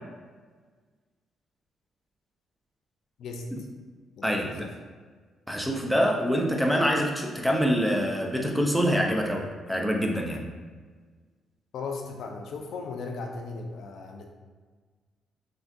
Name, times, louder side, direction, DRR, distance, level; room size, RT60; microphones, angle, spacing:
voice 1, 3.2-3.7 4.2-4.7 11.7-14.3, left 4 dB, 70° left, 2 dB, 0.5 m, -37 dB
voice 2, 4.2-4.7 5.5-10.4, equal, ahead, 0 dB, 0.6 m, -25 dB
5.7 x 2.4 x 2.6 m, 1.5 s
cardioid pair, 90°, 0 cm